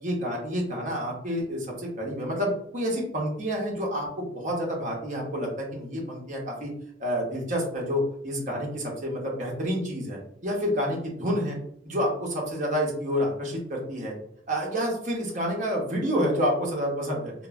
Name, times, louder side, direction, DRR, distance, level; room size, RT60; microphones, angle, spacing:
voice 1, 0.0-6.7 7.0-11.6 11.8-14.1 14.5-17.3, equal, 40° right, -2 dB, 0.7 m, -29 dB
2.9 x 2.0 x 2.3 m, 0.70 s
head